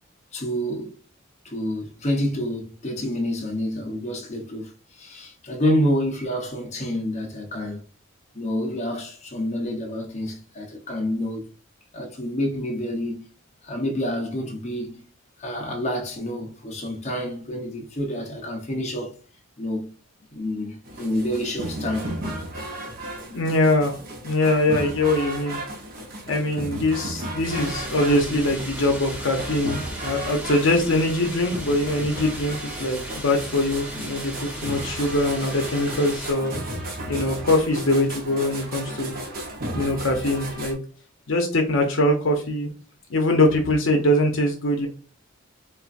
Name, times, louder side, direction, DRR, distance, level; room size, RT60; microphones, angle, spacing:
voice 1, 0.3-0.9 1.4-4.7 5.0-7.8 8.3-11.5 11.9-13.3 13.6-15.0 15.4-19.1 19.6-19.9 20.3-22.1, equal, 35° left, 0.8 m, -28 dB
sound 1, 20.8-40.7, right 1 dB, 45° right, 0.9 m, -35 dB
voice 2, 23.3-24.0 24.2-25.6 26.3-36.5 37.1-39.1 39.7-40.8 41.3-42.7 43.1-44.9, left 1 dB, 65° left, 0.7 m, -22 dB
sound 2, 27.4-36.3, right 1 dB, 10° right, 0.9 m, -36 dB
4.3 x 2.5 x 2.5 m
head